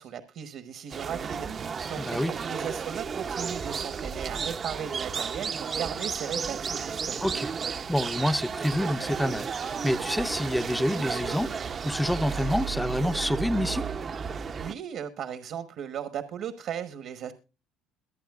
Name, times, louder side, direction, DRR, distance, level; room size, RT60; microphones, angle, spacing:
voice 1, 0.0-7.2 14.6-17.3, right 8 dB, 60° right, 1.1 m, -37 dB
sound 1, 0.9-14.7, right 6 dB, 40° right, 0.6 m, -33 dB
voice 2, 2.0-2.3 7.2-7.5 7.9-13.9, equal, 5° left, 0.6 m, -28 dB
22.5 x 8.9 x 2.4 m
supercardioid pair, 85°, 0 cm